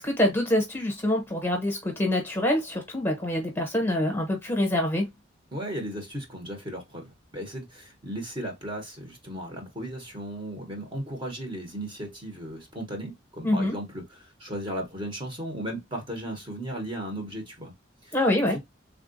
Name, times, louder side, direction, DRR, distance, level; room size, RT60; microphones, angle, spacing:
voice 1, 0.0-5.1 13.4-13.7 18.1-18.6, left 1 dB, 10° left, 0.9 m, -25 dB
voice 2, 5.5-17.7 18.0-18.2 18.5-18.6, right 1 dB, 25° right, 0.9 m, -36 dB
3.5 x 2.3 x 2.5 m
head